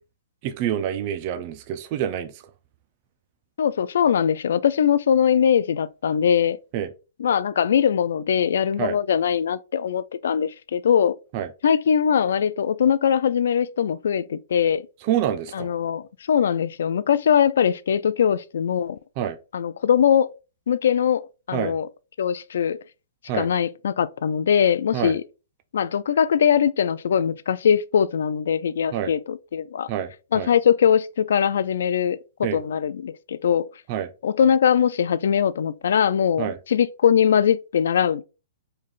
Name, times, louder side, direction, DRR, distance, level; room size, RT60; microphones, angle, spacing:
voice 1, 0.4-2.3 6.7-6.9 8.8-9.0 11.3-11.5 15.0-15.7 19.2-19.4 21.5-21.7 23.3-23.5 24.9-25.1 28.9-29.1 29.9-30.1 30.3-30.5 32.4-32.6 33.9-34.1 36.4-36.6, right 10 dB, 30° right, 0.4 m, -26 dB
voice 2, 3.6-6.6 7.2-11.2 11.6-14.9 15.5-19.0 19.5-20.3 20.7-21.9 22.2-22.8 23.3-25.2 25.7-29.9 30.3-33.7 34.2-38.2, left 8 dB, 70° left, 0.3 m, -21 dB
3.3 x 2.4 x 3.7 m
hypercardioid pair, 165°, 0 cm